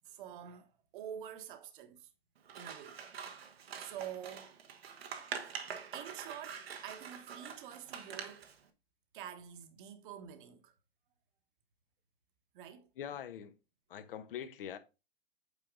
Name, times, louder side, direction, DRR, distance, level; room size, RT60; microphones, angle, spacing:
voice 1, 0.0-2.1 2.5-3.0 3.8-4.6 5.9-8.5 9.1-10.7 12.5-12.9, right 9 dB, 55° right, 1.4 m, -47 dB
Scissors, 2.5-8.6, right 7 dB, 70° right, 1.2 m, -45 dB
voice 2, 12.9-13.6 13.9-14.8, left 9 dB, 60° left, 1.0 m, -43 dB
8.6 x 4.8 x 3.7 m
hypercardioid pair, 115°, 31 cm